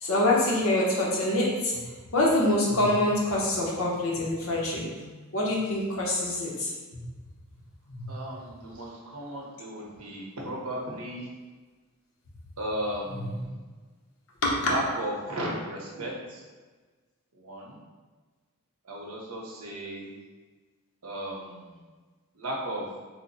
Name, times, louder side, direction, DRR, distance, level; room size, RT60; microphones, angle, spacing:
voice 1, 0.0-1.8 2.1-7.0 7.9-8.2 13.3-13.4 14.4-14.7, left 1 dB, 65° left, -4 dB, 0.8 m, -26 dB
voice 2, 8.1-11.3 12.6-13.6 14.6-16.4 17.3-17.8 18.8-20.1 21.0-21.8 22.3-22.9, right 1 dB, 70° right, -3 dB, 0.8 m, -35 dB
3.1 x 2.1 x 4.1 m, 1.3 s
head